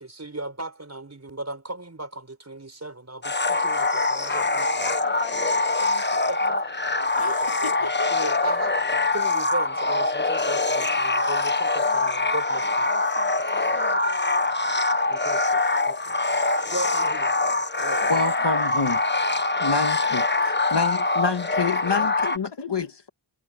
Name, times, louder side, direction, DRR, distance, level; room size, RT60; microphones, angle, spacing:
voice 1, 0.0-4.9 6.3-6.6 7.2-8.7 9.1-12.9 15.1-16.2 16.7-17.4 17.8-18.1, right 2 dB, 30° right, 5.5 m, -36 dB
sound 1, 3.2-22.4, left 3 dB, 20° left, 1.1 m, -24 dB
voice 2, 4.3-8.5 11.8-15.0 15.4-15.9 16.8-17.2 18.0-18.7 20.0-22.6, left 4 dB, 90° left, 4.7 m, -41 dB
voice 3, 18.1-19.0 19.6-23.1, left 4 dB, 55° left, 1.9 m, -28 dB
wide cardioid pair, 80°, 48 cm